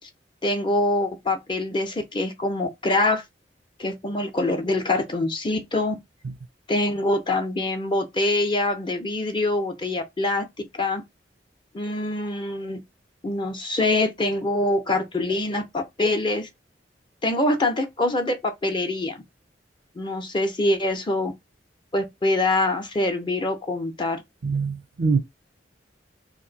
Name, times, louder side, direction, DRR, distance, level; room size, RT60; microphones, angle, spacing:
voice 1, 0.4-3.2 3.8-6.0 6.7-10.5 10.7-11.0 11.7-12.8 13.2-16.5 17.2-19.2 20.0-21.3 21.9-24.2, left 2 dB, 25° left, 0.6 m, -24 dB
voice 2, 24.4-25.2, right 4 dB, 85° right, 0.5 m, -23 dB
2.9 x 2.5 x 3.9 m
head